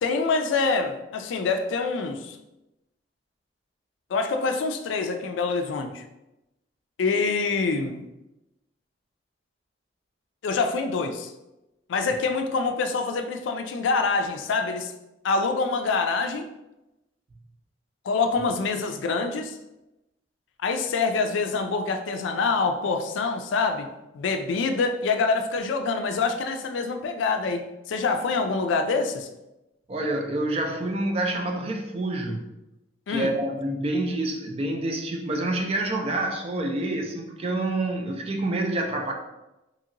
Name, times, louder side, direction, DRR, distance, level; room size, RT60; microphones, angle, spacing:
voice 1, 0.0-2.4 4.1-6.0 7.0-8.1 10.4-11.3 11.9-14.9 15.2-16.5 18.0-19.6 20.6-23.9 24.1-29.3 33.1-33.3, left 4 dB, 85° left, 7 dB, 0.3 m, -25 dB
voice 2, 29.9-32.4 33.1-39.1, right 2 dB, 30° right, 3 dB, 0.3 m, -27 dB
2.9 x 2.8 x 2.5 m, 0.95 s
head